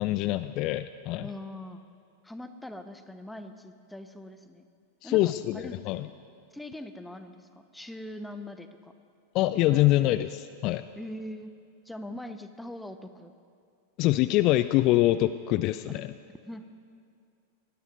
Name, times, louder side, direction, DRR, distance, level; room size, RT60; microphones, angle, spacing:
voice 1, 0.0-1.3 5.0-6.1 9.3-10.8 14.0-16.1, left 16 dB, 40° left, 12 dB, 0.4 m, -25 dB
voice 2, 1.2-1.8 2.2-4.7 5.0-5.7 6.5-8.9 9.7-9.8 11.0-11.5 11.8-13.3 16.4-16.6, left 1 dB, 5° left, 9 dB, 0.9 m, -42 dB
19.0 x 12.5 x 5.4 m, 2.3 s
figure-of-eight pair, 90°, 0 cm